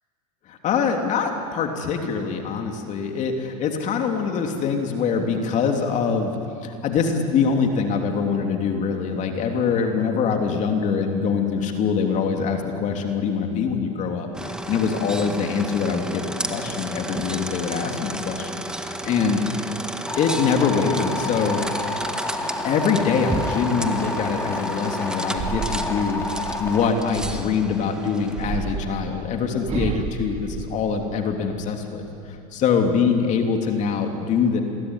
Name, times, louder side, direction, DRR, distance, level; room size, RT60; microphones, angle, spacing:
voice 1, 0.5-6.3 6.6-19.4 20.2-21.6 22.6-34.6, left 6 dB, 40° left, 3 dB, 3.2 m, -24 dB
sound 1, 14.3-28.8, right 1 dB, 5° right, 1.8 m, -32 dB
sound 2, 20.1-26.9, left 2 dB, 15° left, 3.4 m, -30 dB
sound 3, 25.3-27.7 28.3-31.4 31.8-32.4, right 7 dB, 35° right, 2.0 m, -32 dB
27.5 x 21.5 x 9.9 m, 2.4 s
hypercardioid pair, 105°, 19 cm